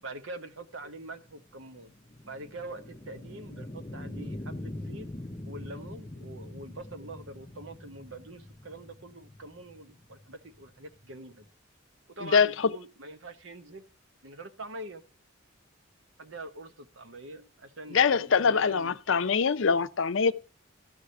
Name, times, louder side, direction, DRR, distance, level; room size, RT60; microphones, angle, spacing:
voice 1, 0.0-1.9 2.2-5.1 5.5-11.5 12.1-13.9 14.2-15.0 16.2-19.2, right 2 dB, 70° right, 1.1 m, -44 dB
sound 1, 0.8-11.5, left 1 dB, 20° left, 0.6 m, -43 dB
voice 2, 12.2-12.7 17.9-20.3, left 5 dB, 70° left, 0.6 m, -24 dB
13.0 x 4.9 x 6.9 m
head